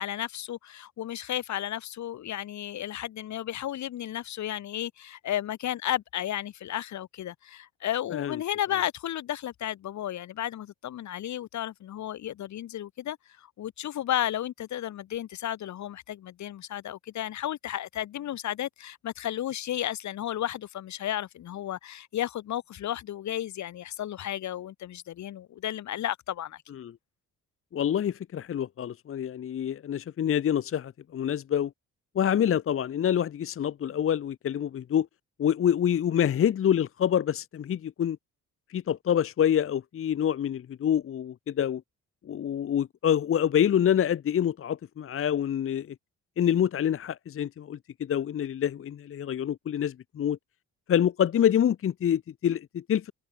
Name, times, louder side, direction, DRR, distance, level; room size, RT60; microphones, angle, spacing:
voice 1, 0.0-26.6, left 12 dB, 70° left, 1.8 m, -33 dB
voice 2, 27.7-31.7 32.1-35.1 35.4-38.2 38.7-41.8 42.3-45.9 46.4-50.4 50.9-53.1, left 9 dB, 45° left, 0.8 m, -26 dB
cardioid pair, 90°, 30 cm